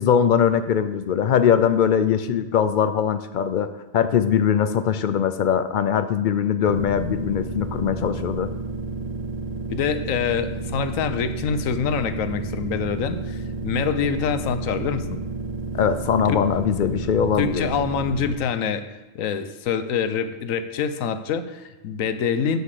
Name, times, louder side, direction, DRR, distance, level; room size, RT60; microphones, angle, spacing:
voice 1, 0.0-8.5 15.7-17.7, left 8 dB, 65° left, 11 dB, 0.4 m, -21 dB
sound 1, 6.7-18.3, right 3 dB, 40° right, 0.6 m, -31 dB
voice 2, 9.7-13.4 13.6-15.2 16.3-16.5 17.4-18.8 19.1-22.6, left 6 dB, 85° left, 10 dB, 1.1 m, -25 dB
7.2 x 6.6 x 6.6 m, 1.1 s
omnidirectional pair, 1.4 m